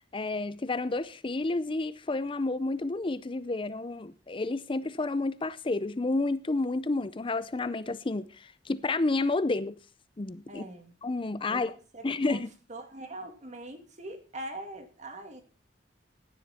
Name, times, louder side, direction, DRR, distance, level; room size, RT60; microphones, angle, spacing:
voice 1, 0.1-9.8 10.2-10.6 11.0-11.7 12.0-12.5, left 2 dB, 30° left, 0.5 m, -30 dB
voice 2, 10.5-10.9 11.5-12.4 12.7-15.4, right 1 dB, 40° right, 2.6 m, -42 dB
16.0 x 10.5 x 4.3 m
head